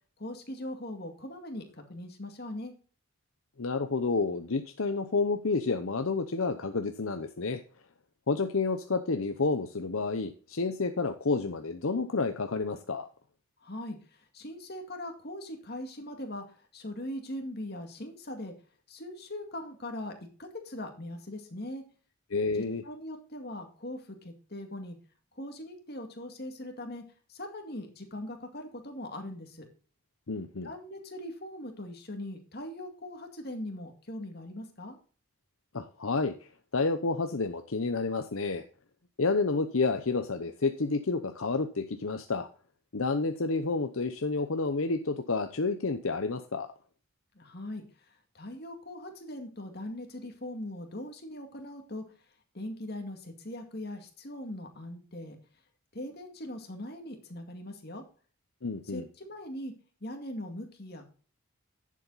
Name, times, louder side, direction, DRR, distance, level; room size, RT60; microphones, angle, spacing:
voice 1, 0.2-2.7 13.6-18.5 18.9-20.1 20.4-21.8 22.5-25.0 25.3-27.0 27.3-29.7 30.6-35.0 47.3-52.0 52.5-55.4 55.9-58.0 58.8-59.7 60.0-61.0, left 1 dB, 45° left, 4 dB, 2.1 m, -40 dB
voice 2, 3.6-7.6 8.3-13.1 22.3-22.8 30.3-30.7 35.7-38.6 39.2-42.5 42.9-46.7 58.6-59.0, left 3 dB, 70° left, 7 dB, 0.8 m, -30 dB
10.5 x 7.5 x 4.0 m, 0.40 s
head